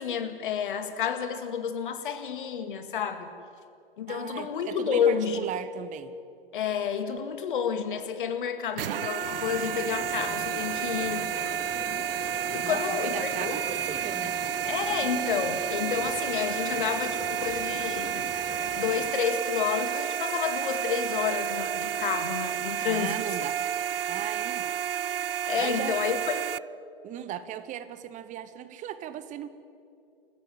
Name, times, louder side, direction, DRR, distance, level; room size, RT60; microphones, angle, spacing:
voice 1, 0.0-3.3 4.0-5.5 6.5-11.3 12.5-13.6 14.7-18.3 18.8-23.2 25.5-26.5, left 7 dB, 60° left, 8 dB, 2.1 m, -30 dB
voice 2, 4.1-6.1 12.6-14.3 22.9-23.6 24.1-24.7 25.6-26.0 27.0-29.5, right 10 dB, 25° right, 13 dB, 1.2 m, -37 dB
Dumpster Startup, 8.8-26.6, right 9 dB, 75° right, 0.4 m, -31 dB
sound 1, 9.2-19.1, left 7 dB, 25° left, 1.4 m, -42 dB
28.0 x 15.0 x 7.7 m, 2.6 s
figure-of-eight pair, 100°, 29 cm